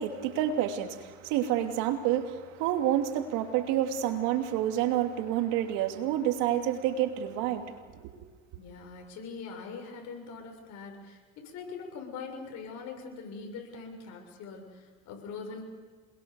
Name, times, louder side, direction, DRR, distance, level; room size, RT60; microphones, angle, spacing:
voice 1, 0.0-7.7 8.0-8.1, right 11 dB, 85° right, 6 dB, 2.8 m, -28 dB
voice 2, 8.6-15.6, left 5 dB, 65° left, 3 dB, 7.1 m, -42 dB
28.0 x 21.5 x 7.0 m, 1.5 s
supercardioid pair, 100°, 29 cm